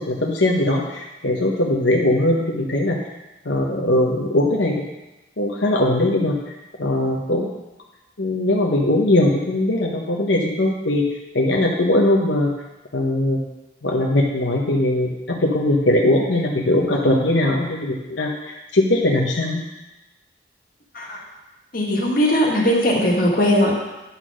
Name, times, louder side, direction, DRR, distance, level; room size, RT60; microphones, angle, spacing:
voice 1, 0.0-3.0 3.4-4.8 5.4-7.5 8.2-11.1 11.3-12.5 12.9-13.4 13.8-19.6, left 1 dB, 90° left, -1 dB, 1.0 m, -20 dB
voice 2, 21.7-23.7, equal, 50° left, -2 dB, 1.8 m, -19 dB
9.7 x 4.1 x 6.2 m, 1.0 s
head